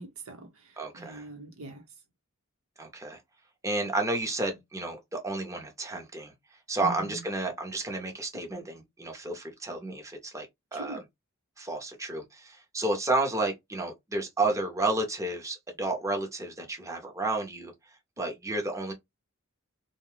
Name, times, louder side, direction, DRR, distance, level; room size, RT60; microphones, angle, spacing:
voice 1, 0.0-1.8 6.8-7.2 10.7-11.0, right 3 dB, 80° right, 0.9 m, -42 dB
voice 2, 0.8-1.2 2.8-3.2 3.6-6.3 6.7-10.5 10.7-11.0 11.6-17.7 18.2-18.9, right 2 dB, 15° right, 0.7 m, -31 dB
2.5 x 2.2 x 3.1 m
head